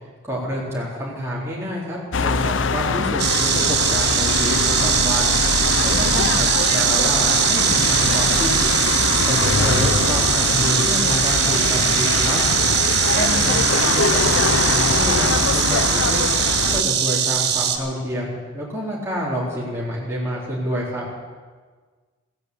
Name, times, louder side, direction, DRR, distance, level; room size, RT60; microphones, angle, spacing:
voice 1, 0.2-5.4 5.8-8.7 9.2-12.4 13.1-16.2 16.7-21.0, equal, 10° right, -6 dB, 3.9 m, -28 dB
sound 1, 2.1-16.8, left 4 dB, 65° left, 0.6 m, -22 dB
Insect, 3.2-17.8, right 9 dB, 50° right, 1.4 m, -21 dB
16.5 x 10.5 x 8.3 m, 1.5 s
head